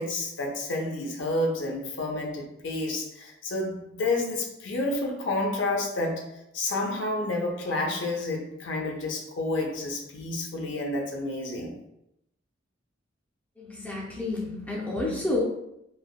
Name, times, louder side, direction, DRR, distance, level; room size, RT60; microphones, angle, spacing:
voice 1, 0.0-6.3 6.5-11.8, left 2 dB, 70° left, 1 dB, 0.5 m, -30 dB
voice 2, 13.6-15.4, left 2 dB, 10° left, -3 dB, 0.5 m, -30 dB
3.3 x 2.2 x 2.3 m, 0.80 s
head